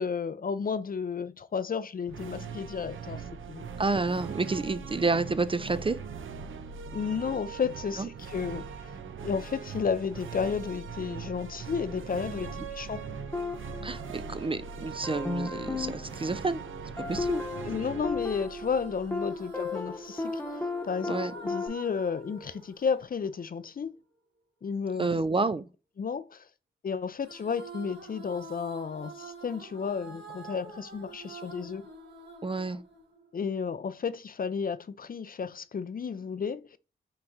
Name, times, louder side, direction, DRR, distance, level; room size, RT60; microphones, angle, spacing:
voice 1, 0.0-3.2 3.5-3.7 6.9-8.9 9.2-13.0 17.6-20.4 20.8-23.9 24.6-25.1 26.0-26.5 26.8-31.9 33.3-36.8, left 6 dB, 45° left, 0.5 m, -32 dB
sound 1, 2.0-19.5, right 6 dB, 70° right, 0.6 m, -41 dB
voice 2, 3.8-6.0 8.0-8.1 13.8-16.6 17.0-17.4 19.5-19.6 21.1-21.3 25.0-25.7 32.4-32.8, right 3 dB, 25° right, 0.4 m, -29 dB
sound 2, 13.3-14.6 15.0-21.7, left 3 dB, 10° left, 1.0 m, -35 dB
sound 3, 18.2-23.7 27.2-33.6, right 3 dB, 50° right, 1.5 m, -47 dB
5.8 x 3.0 x 2.6 m
cardioid pair, 45°, 21 cm